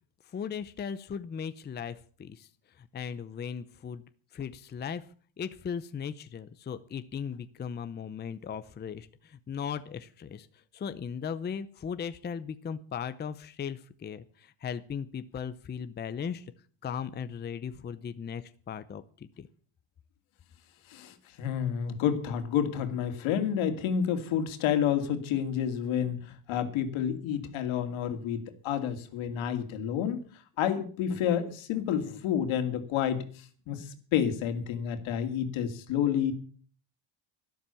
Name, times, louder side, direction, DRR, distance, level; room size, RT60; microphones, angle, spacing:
voice 1, 0.3-2.5 2.9-4.0 4.3-5.0 5.4-10.5 10.7-14.2 14.6-16.4 16.8-19.0 19.4-19.5, left 7 dB, 20° left, 12 dB, 0.6 m, -37 dB
voice 2, 20.9-30.2 30.6-36.3, left 9 dB, 80° left, 8 dB, 2.6 m, -29 dB
12.5 x 12.0 x 7.0 m, 0.43 s
cardioid pair, 150°, 47 cm